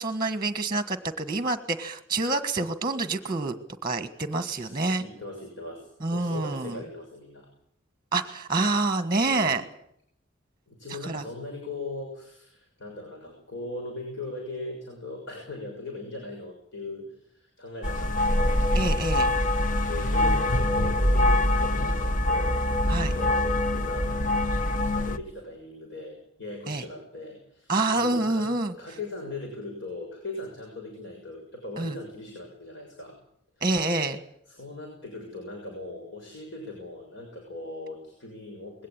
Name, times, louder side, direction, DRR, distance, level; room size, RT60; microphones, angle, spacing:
voice 1, 0.0-3.5 3.8-5.0 6.0-6.8 8.1-9.6 11.0-11.2 18.7-19.3 22.9-23.1 26.7-26.8 27.7-28.7 31.8-32.0 33.6-34.2, right 2 dB, 20° right, 10 dB, 1.5 m, -27 dB
voice 2, 4.4-7.5 9.3-9.7 10.7-18.6 19.9-24.5 24.8-28.4 28.8-33.1 34.5-38.9, left 2 dB, 65° left, 0 dB, 6.4 m, -39 dB
sound 1, 17.8-25.2, left 1 dB, 45° left, 1.1 m, -24 dB
21.5 x 17.5 x 8.8 m, 0.70 s
head